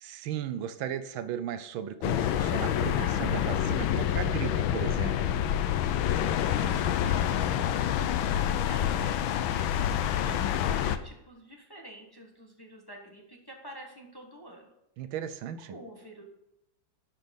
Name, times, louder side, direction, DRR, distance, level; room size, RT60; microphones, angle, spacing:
voice 1, 0.0-5.4 15.0-15.8, right 9 dB, 80° right, 12 dB, 1.5 m, -36 dB
sound 1, 2.0-11.0, left 10 dB, 80° left, 1.4 m, -27 dB
voice 2, 6.3-14.7 15.7-16.2, right 1 dB, 15° left, 1 dB, 1.3 m, -48 dB
11.5 x 6.2 x 5.3 m, 0.88 s
omnidirectional pair, 2.2 m